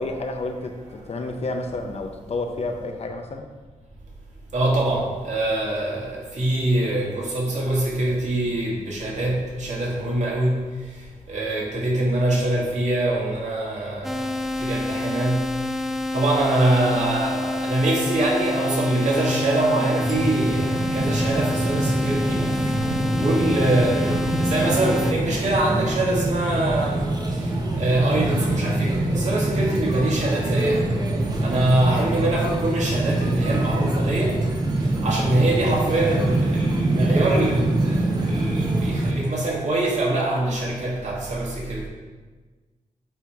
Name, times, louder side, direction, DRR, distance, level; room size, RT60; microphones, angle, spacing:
voice 1, 0.0-3.5 33.0-33.2, left 2 dB, 50° left, 5 dB, 0.7 m, -30 dB
voice 2, 4.5-10.6 10.9-11.0 11.3-15.5 16.1-22.8 23.1-30.9 31.4-34.4 35.0-41.9, right 1 dB, 65° right, -3 dB, 1.7 m, -24 dB
sound 1, 14.0-25.1, left 2 dB, ahead, 0.4 m, -28 dB
sound 2, 20.0-39.1, right 1 dB, 30° right, 1.0 m, -24 dB
9.0 x 3.0 x 4.7 m, 1.4 s
wide cardioid pair, 120°, 13 cm